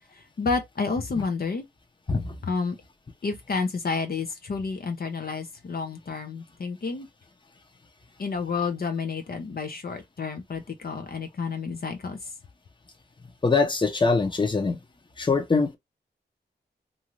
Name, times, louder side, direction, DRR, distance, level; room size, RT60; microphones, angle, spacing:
voice 1, 0.1-1.6 2.4-2.8 3.2-7.1 8.2-12.3, left 4 dB, 55° left, 0.7 m, -30 dB
voice 2, 13.4-14.8 15.2-15.8, left 4 dB, 25° left, 0.8 m, -23 dB
2.7 x 2.4 x 3.0 m
wide cardioid pair, 85°, 18 cm